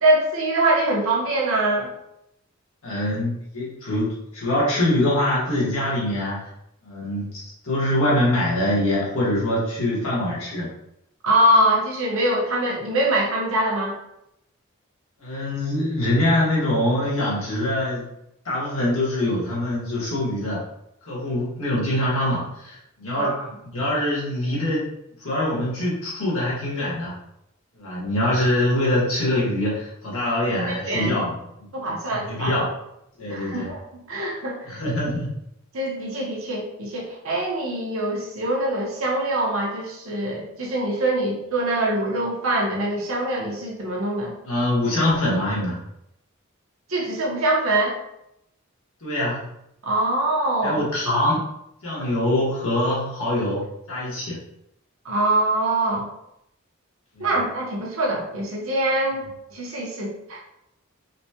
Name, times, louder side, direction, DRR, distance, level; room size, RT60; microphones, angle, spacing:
voice 1, 0.0-1.9 11.2-13.9 23.1-23.4 30.7-31.1 31.7-32.5 33.3-33.8 34.1-34.6 35.7-44.3 46.9-48.0 49.8-50.8 55.0-56.1 57.2-60.4, right 1 dB, 75° right, -3 dB, 1.0 m, -23 dB
voice 2, 2.8-6.5 6.8-10.7 15.2-18.1 18.4-20.6 21.0-23.4 23.7-24.9 25.2-27.2 27.8-31.3 31.9-32.7 33.2-33.7 34.7-35.3 44.4-45.8 49.0-49.5 50.6-51.4 51.8-54.4 57.1-57.3, left 1 dB, 75° left, -6 dB, 1.4 m, -24 dB
4.1 x 2.2 x 2.8 m, 0.80 s
head